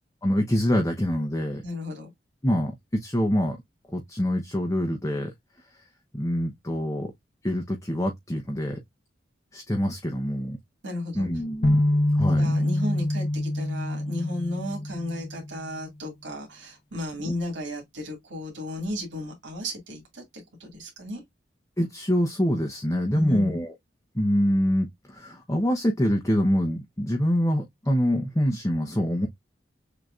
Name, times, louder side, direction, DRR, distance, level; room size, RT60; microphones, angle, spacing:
voice 1, 0.2-1.6 2.4-3.6 3.9-5.3 6.1-7.1 7.4-8.8 9.5-10.6 11.2-11.8 12.1-12.5 21.8-23.7 24.1-29.3, equal, 15° left, 0.8 m, -25 dB
voice 2, 1.6-2.1 10.8-11.3 12.4-21.2 23.1-23.6, left 1 dB, 80° right, 2.0 m, -34 dB
sound 1, 11.6-15.6, left 1 dB, 70° left, 1.0 m, -25 dB
6.4 x 2.9 x 2.4 m
head